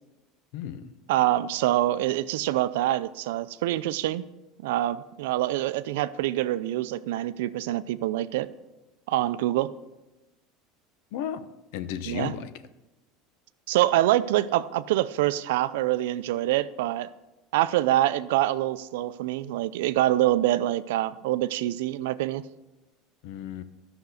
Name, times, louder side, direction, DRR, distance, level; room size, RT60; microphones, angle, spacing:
voice 1, 0.5-0.9 11.1-12.5 23.2-23.6, left 9 dB, 75° left, 0.7 m, -34 dB
voice 2, 1.1-4.3 4.6-8.5 9.1-9.7 12.1-12.3 13.7-17.1 17.5-22.4, right 14 dB, 85° right, 0.5 m, -25 dB
12.0 x 6.0 x 6.5 m
supercardioid pair, 120°, 0 cm